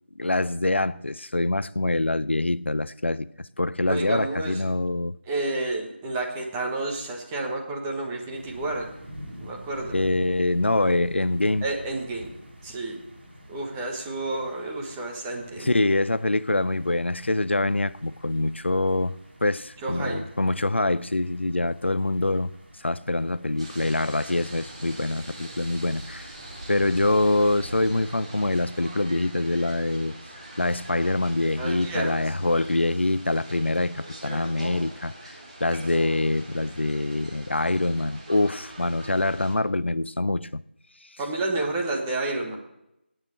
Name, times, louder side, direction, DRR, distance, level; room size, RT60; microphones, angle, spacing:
voice 1, 0.2-3.3 3.6-5.2 9.9-11.6 15.6-22.5 22.8-26.3 26.7-30.2 30.6-35.3 35.6-40.6, left 2 dB, 80° left, 0.5 m, -25 dB
voice 2, 3.9-4.6 5.3-8.9 9.4-9.9 11.6-12.4 12.6-13.0 13.5-15.8 19.8-20.2 31.6-32.3 41.2-42.6, right 2 dB, 10° right, 1.3 m, -30 dB
sound 1, 8.3-28.1, equal, 60° right, 5.3 m, -48 dB
sound 2, 23.6-39.5, right 1 dB, 30° right, 3.3 m, -42 dB
11.5 x 9.3 x 7.6 m
figure-of-eight pair, 165°, 6 cm